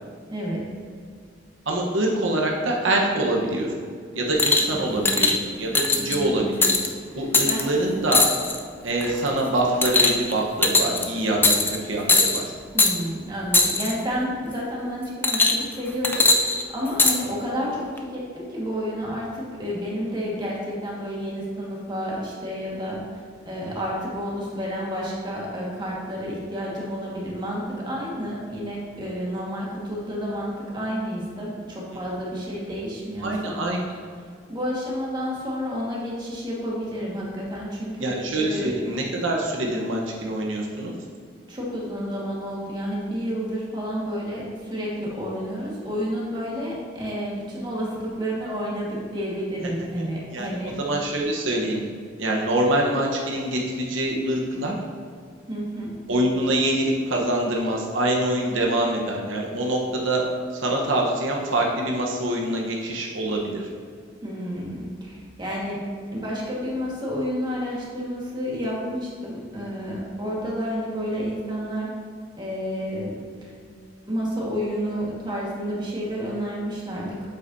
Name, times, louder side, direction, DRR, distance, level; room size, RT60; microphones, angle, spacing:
voice 1, 0.3-0.6 4.6-5.3 6.0-6.5 7.1-7.7 12.7-33.6 34.5-38.7 41.5-50.7 55.5-56.0 64.2-71.9 72.4-73.5 74.1-77.3, equal, 25° right, -4 dB, 1.6 m, -30 dB
voice 2, 1.7-3.7 4.1-5.3 5.6-6.7 7.1-8.2 8.8-12.4 33.2-33.8 38.0-40.9 50.3-51.8 52.2-54.8 56.1-60.2 60.5-63.7, right 1 dB, 85° right, -1 dB, 1.1 m, -25 dB
sound 1, 4.4-4.7 5.1-5.4 5.7-6.2 6.6-6.9 7.3-7.6 8.1-8.6 9.0-9.3 9.8-10.3 10.6-11.0 11.4-11.8 12.1-12.4 12.8-12.9 13.5-13.9 15.2-15.7 16.0-17.2 18.0-18.1, left 3 dB, 10° left, 0.4 m, -19 dB
8.2 x 7.9 x 2.7 m, 2.1 s
head